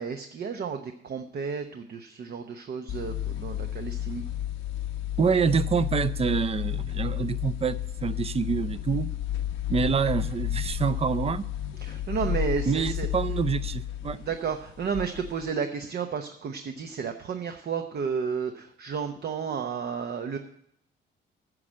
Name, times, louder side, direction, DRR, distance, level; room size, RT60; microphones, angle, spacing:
voice 1, 0.0-4.2 11.8-13.1 14.3-20.4, right 6 dB, 55° right, 6 dB, 0.9 m, -32 dB
sound 1, 2.9-15.5, left 11 dB, 75° left, 0.8 m, -32 dB
voice 2, 5.2-9.1 9.7-11.5 12.7-14.2, right 6 dB, 30° right, 15 dB, 0.6 m, -26 dB
9.7 x 6.3 x 8.6 m, 0.72 s
cardioid pair, 90°, 20 cm